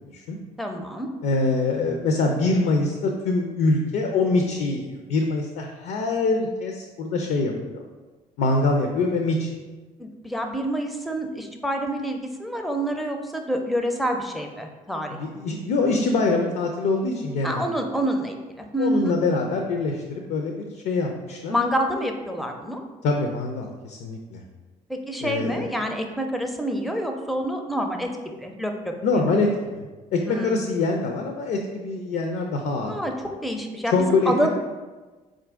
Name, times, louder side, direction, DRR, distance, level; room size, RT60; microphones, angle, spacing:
voice 1, 0.6-1.1 10.0-15.2 17.4-19.2 21.5-22.8 24.9-28.1 28.4-28.9 30.3-30.6 32.9-34.5, equal, ahead, 4 dB, 0.5 m, -27 dB
voice 2, 1.2-7.8 8.4-9.5 15.2-17.7 18.8-21.5 23.0-24.4 25.2-25.7 29.0-33.0 33.9-34.5, left 3 dB, 55° left, 3 dB, 0.5 m, -24 dB
4.2 x 2.5 x 3.5 m, 1.3 s
hypercardioid pair, 50°, 20 cm